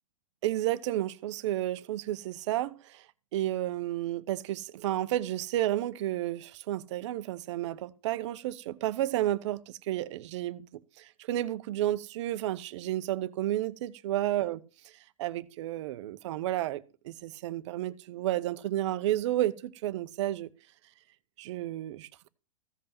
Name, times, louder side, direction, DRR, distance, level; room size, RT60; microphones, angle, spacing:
voice 1, 0.4-3.0 3.3-10.7 11.0-14.6 15.2-20.5 21.4-22.3, right 14 dB, 60° right, 0.9 m, -31 dB
15.0 x 5.4 x 6.0 m
hypercardioid pair, 115°, 17 cm